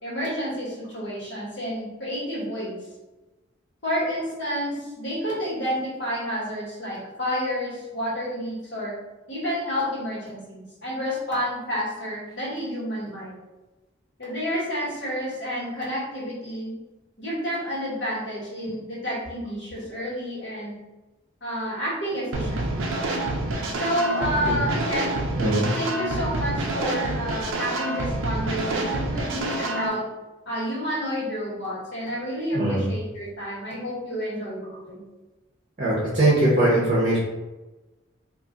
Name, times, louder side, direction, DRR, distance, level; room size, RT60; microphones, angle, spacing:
voice 1, 0.0-2.8 3.8-8.9 9.3-13.3 14.2-16.7 17.2-20.7 21.4-22.9 23.8-25.2 25.6-30.0 30.4-35.0, equal, 60° left, -7 dB, 1.4 m, -30 dB
sound 1, 22.3-29.9, right 2 dB, 80° right, 0.5 m, -28 dB
voice 2, 25.4-25.7 32.5-32.8 35.8-37.2, right 1 dB, 40° right, -6 dB, 0.7 m, -21 dB
2.5 x 2.4 x 3.7 m, 1.1 s
head